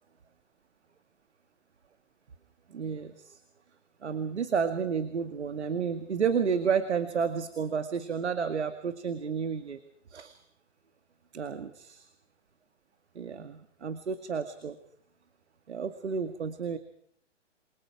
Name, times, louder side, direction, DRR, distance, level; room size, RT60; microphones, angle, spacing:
voice 1, 2.7-3.3 4.0-9.8 10.1-10.4 11.3-12.0 13.2-14.8 15.7-16.8, right 6 dB, 60° right, 10 dB, 2.1 m, -31 dB
29.0 x 24.0 x 4.7 m, 0.65 s
figure-of-eight pair, 130°, 37 cm